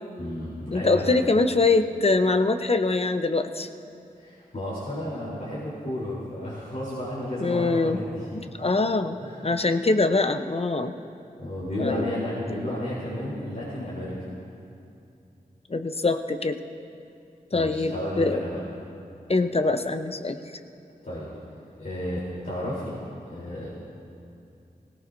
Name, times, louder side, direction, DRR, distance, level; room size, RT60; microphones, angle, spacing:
voice 1, 0.2-1.1 4.2-8.3 9.2-9.4 11.4-14.2 17.5-18.6 21.0-21.3 21.8-23.0 23.3-23.7, left 1 dB, 55° left, -9 dB, 3.6 m, -32 dB
voice 2, 0.7-3.7 7.4-8.0 8.3-9.2 9.4-10.9 11.8-12.1 12.7-12.8 15.7-16.6 17.5-18.4 19.3-20.4, left 3 dB, 40° left, 8 dB, 0.8 m, -23 dB
18.0 x 17.0 x 2.7 m, 2.6 s
cardioid pair, 40°, 16 cm